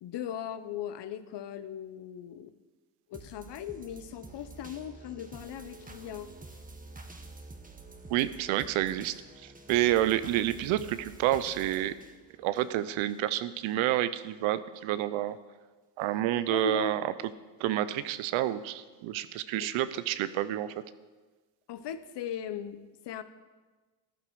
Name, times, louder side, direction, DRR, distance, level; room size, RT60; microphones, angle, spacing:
voice 1, 0.0-2.5 3.1-6.3 16.5-17.0 19.6-19.7 21.7-23.2, left 9 dB, 60° left, 12 dB, 1.0 m, -38 dB
sound 1, 3.1-13.2 13.6-13.7, right 3 dB, 15° right, 1.5 m, -49 dB
voice 2, 8.1-9.1 9.4-11.9 12.4-15.4 16.0-17.1 17.6-20.7, right 13 dB, 80° right, 14 dB, 0.8 m, -29 dB
14.0 x 11.5 x 4.8 m, 1.3 s
supercardioid pair, 75°, 46 cm